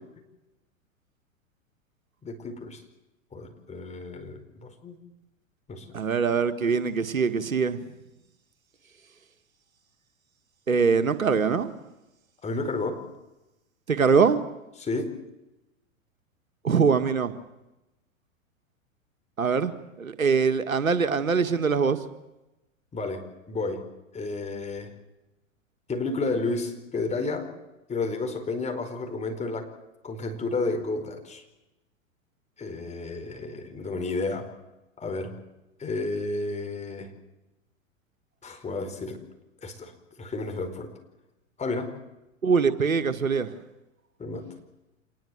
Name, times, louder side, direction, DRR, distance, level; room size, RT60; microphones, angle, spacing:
voice 1, 2.2-2.8 3.3-5.0 5.7-5.9 12.4-13.0 14.8-15.2 21.0-21.1 22.9-23.9 24.1-24.9 25.9-27.5 27.9-29.7 30.0-31.4 32.6-34.5 35.0-35.4 35.8-37.1 38.4-39.2 39.6-40.9 41.6-42.0 44.2-44.5, left 3 dB, 15° left, 5 dB, 4.7 m, -31 dB
voice 2, 5.9-7.8 10.7-11.7 13.9-14.4 16.6-17.3 19.4-19.7 20.0-22.0 42.4-43.5, right 5 dB, 90° right, 10 dB, 1.8 m, -23 dB
27.0 x 20.0 x 7.9 m, 0.98 s
hypercardioid pair, 105°, 40 cm